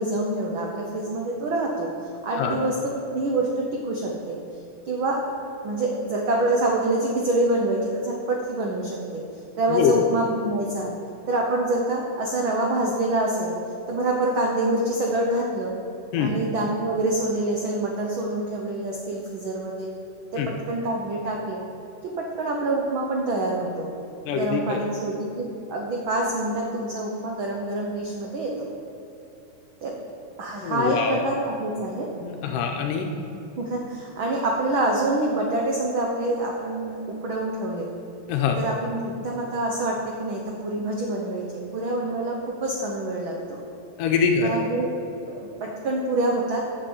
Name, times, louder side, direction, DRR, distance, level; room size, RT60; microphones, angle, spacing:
voice 1, 0.0-1.9 2.2-2.8 3.1-4.4 4.8-5.2 5.6-9.2 9.6-10.9 11.3-13.5 13.9-15.7 16.2-19.9 20.3-21.6 22.0-23.9 24.3-28.7 29.8-30.0 30.4-32.1 33.6-37.9 38.6-43.6 44.4-44.9 45.3-46.6, right 2 dB, 90° right, -1 dB, 1.1 m, -26 dB
voice 2, 24.3-24.9 30.6-31.2 32.2-33.1 38.3-38.6 44.0-44.6, left 6 dB, 90° left, 3 dB, 2.3 m, -24 dB
7.7 x 7.3 x 7.2 m, 2.8 s
omnidirectional pair, 3.7 m